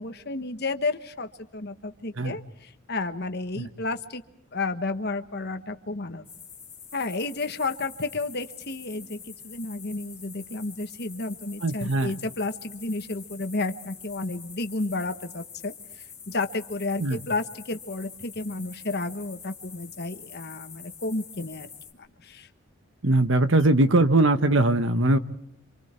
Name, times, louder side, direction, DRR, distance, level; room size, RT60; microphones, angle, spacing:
voice 1, 0.0-4.2 4.5-6.2 6.9-15.7 16.3-21.7 22.0-22.5, left 3 dB, 50° left, 8 dB, 1.4 m, -32 dB
sound 1, 6.2-21.9, left 7 dB, 15° left, 3.4 m, -46 dB
voice 2, 11.6-12.1 17.0-17.2 23.0-25.2, right 2 dB, 60° right, 10 dB, 1.3 m, -21 dB
28.0 x 27.0 x 4.5 m, 0.82 s
head